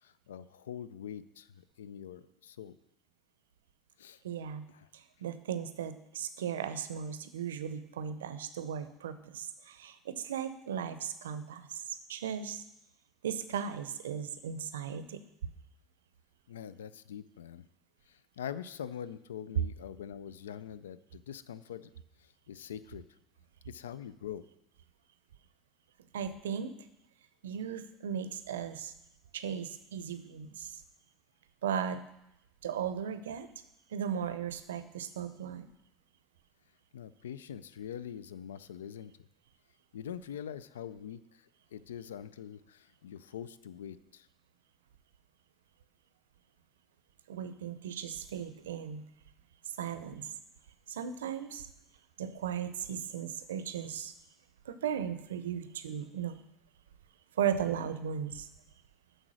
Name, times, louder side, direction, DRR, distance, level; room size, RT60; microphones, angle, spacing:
voice 1, 0.0-2.7 4.0-4.2 4.7-4.9 16.5-17.6 18.1-21.9 22.2-23.0 23.7-24.4 36.9-39.1 39.9-44.3, left 9 dB, 85° left, 16 dB, 0.3 m, -44 dB
voice 2, 4.2-4.7 4.9-12.6 13.2-15.2 26.1-26.7 27.4-28.9 29.3-30.7 31.6-32.0 32.6-33.5 33.9-35.7 47.3-49.0 49.8-50.3 50.9-51.6 52.2-54.1 54.7-56.4 57.4-58.5, right 8 dB, 85° right, 12 dB, 0.5 m, -36 dB
7.6 x 5.1 x 6.2 m, 0.83 s
hypercardioid pair, 70°, 0 cm